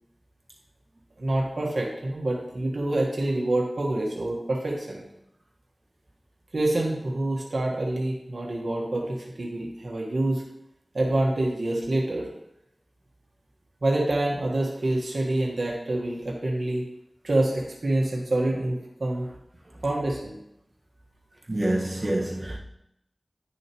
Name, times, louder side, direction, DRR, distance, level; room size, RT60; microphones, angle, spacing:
voice 1, 1.2-5.1 6.5-10.4 10.9-12.3 13.8-16.9 17.2-19.3 19.8-20.4, right 1 dB, 75° right, 1.5 m, -26 dB
voice 2, 21.5-22.6, right 1 dB, 45° right, 1.6 m, -26 dB
10.5 x 6.4 x 3.1 m
wide cardioid pair, 70°, 0 cm